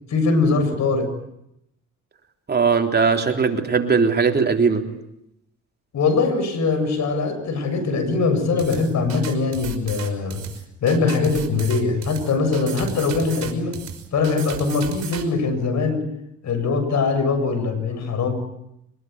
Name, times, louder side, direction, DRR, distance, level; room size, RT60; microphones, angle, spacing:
voice 1, 0.1-1.1 5.9-10.4 10.8-13.8 14.1-16.0 16.4-18.3, left 4 dB, 65° left, 7.4 m, -22 dB
voice 2, 2.5-4.9, right 5 dB, 35° right, 3.5 m, -19 dB
sound 1, 8.6-15.2, right 8 dB, 60° right, 5.9 m, -35 dB
24.0 x 21.5 x 9.5 m
cardioid pair, 90°, 30 cm